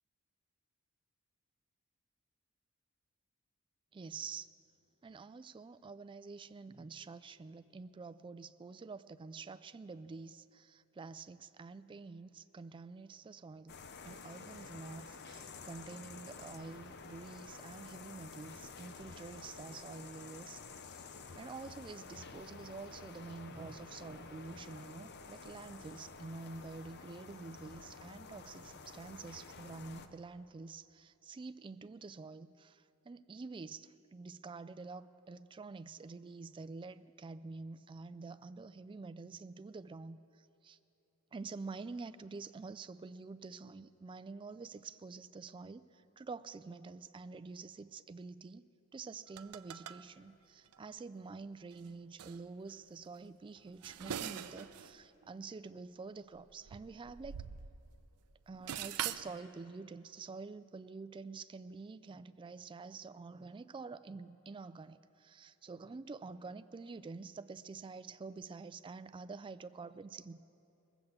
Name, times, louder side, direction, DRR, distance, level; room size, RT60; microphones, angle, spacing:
voice 1, 3.9-4.5 5.0-13.8 14.0-21.1 21.4-40.2 40.6-40.8 41.3-45.9 46.2-57.4 58.5-70.4, right 4 dB, 20° right, 13 dB, 0.3 m, -48 dB
sound 1, 13.7-30.1, left 4 dB, 50° left, 0.7 m, -51 dB
sound 2, 49.3-50.0 50.7-50.8 51.7-51.9 52.2-52.4 53.6-55.0 55.2-55.3 56.4-58.0 58.3-59.3, right 9 dB, 85° right, 0.5 m, -42 dB
20.0 x 8.0 x 7.1 m, 2.8 s
head